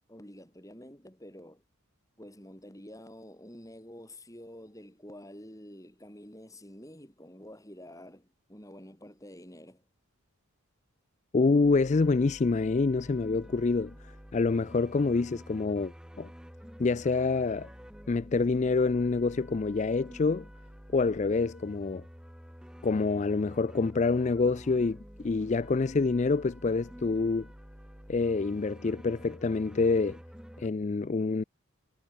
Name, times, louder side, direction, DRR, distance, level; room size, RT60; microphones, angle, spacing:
voice 1, 0.1-1.6 2.2-9.8, left 1 dB, 15° left, 5.8 m, -48 dB
voice 2, 11.3-13.9 14.3-16.3 16.8-17.7 18.1-20.5 20.9-22.0 22.8-27.5 28.1-30.2 30.6-31.4, left 3 dB, 30° left, 0.3 m, -27 dB
sound 1, 11.6-30.7, equal, 5° right, 3.1 m, -49 dB
head